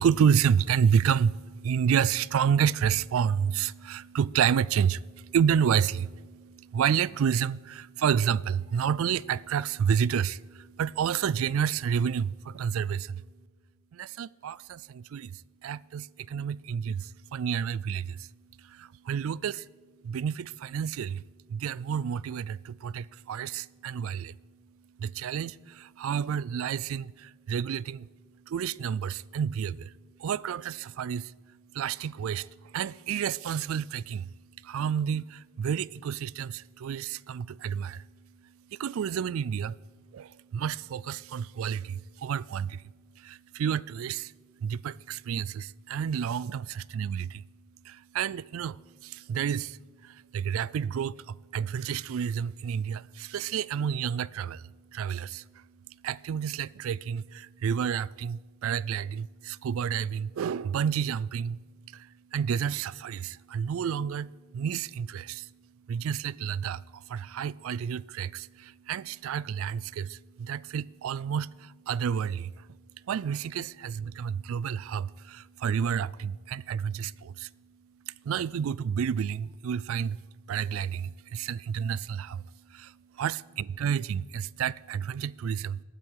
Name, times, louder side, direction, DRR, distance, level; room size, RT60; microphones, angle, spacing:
voice 1, 0.0-13.2 13.9-18.3 18.6-19.7 20.0-21.2 21.5-24.4 25.0-28.1 28.5-29.9 30.2-31.3 31.7-34.3 34.6-38.0 38.7-39.8 40.1-42.8 43.2-44.3 44.6-47.4 47.8-54.6 54.9-55.6 56.0-61.6 61.9-65.5 65.9-72.7 73.1-77.5 78.1-80.2 80.5-82.4 82.7-85.8, right 7 dB, 70° right, 0.3 m, -30 dB
18.5 x 10.0 x 4.7 m
head